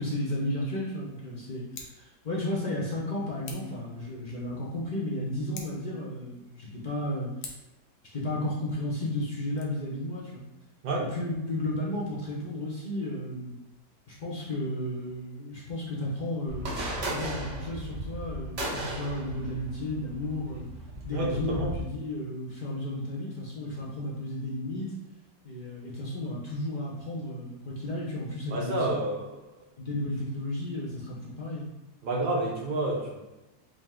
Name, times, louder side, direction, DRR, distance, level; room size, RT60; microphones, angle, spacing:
voice 1, 0.0-7.3 8.1-10.4 11.0-13.6 14.1-20.7 21.1-24.9 25.4-29.0 29.8-31.7, left 1 dB, 50° left, -5 dB, 0.5 m, -33 dB
Scissors, 1.6-2.0 3.4-3.8 5.4-5.9 7.4-7.8 9.4-9.6, left 4 dB, 85° left, 1.4 m, -44 dB
sound 1, 16.5-21.8, right 1 dB, 50° right, 1.1 m, -36 dB
voice 2, 21.1-21.7 28.5-29.4 32.0-33.2, right 2 dB, 80° right, -3 dB, 0.4 m, -29 dB
5.1 x 2.0 x 3.7 m, 1.0 s
omnidirectional pair, 1.8 m